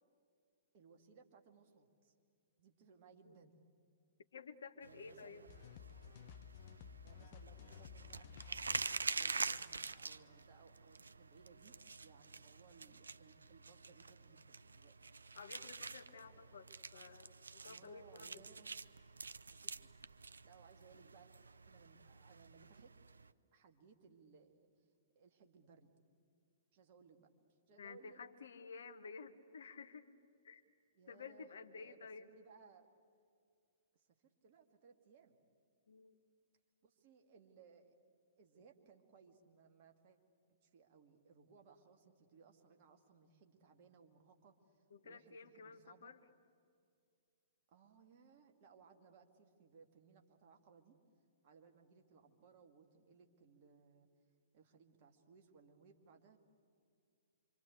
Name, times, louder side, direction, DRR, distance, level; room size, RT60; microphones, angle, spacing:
voice 1, 0.7-2.1 2.6-3.6 4.8-5.5 7.0-15.1 16.2-16.5 17.6-18.7 19.4-21.3 21.6-22.9 23.5-24.7 25.1-25.9 26.7-27.3 27.7-28.2 30.9-32.9 33.9-35.4 36.8-38.0 38.4-40.2 40.6-46.1 47.7-51.0 51.4-54.1 54.5-56.4, right 5 dB, 40° right, 4 dB, 2.4 m, -64 dB
voice 2, 4.3-5.5 15.3-18.4 27.8-30.1 30.4-30.6 31.1-32.3 35.9-36.2 44.9-46.2, left 5 dB, 60° left, 10 dB, 1.3 m, -53 dB
sound 1, 4.8-23.3, right 4 dB, 75° right, 0.6 m, -47 dB
sound 2, 5.5-10.4, left 9 dB, 45° left, 0.9 m, -56 dB
26.5 x 25.0 x 8.4 m, 2.4 s
figure-of-eight pair, 110°, 0 cm